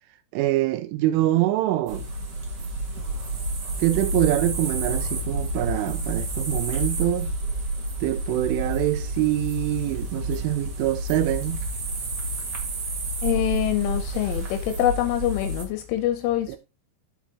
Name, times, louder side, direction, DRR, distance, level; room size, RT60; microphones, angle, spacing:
voice 1, 0.3-2.0 3.8-7.3 8.0-11.6 16.5-16.6, right 15 dB, 80° right, 3.2 m, -24 dB
sound 1, 1.9-15.6, right 1 dB, 60° right, 1.4 m, -29 dB
voice 2, 13.2-16.6, left 12 dB, 85° left, 3.2 m, -25 dB
11.5 x 6.0 x 2.9 m
omnidirectional pair, 5.8 m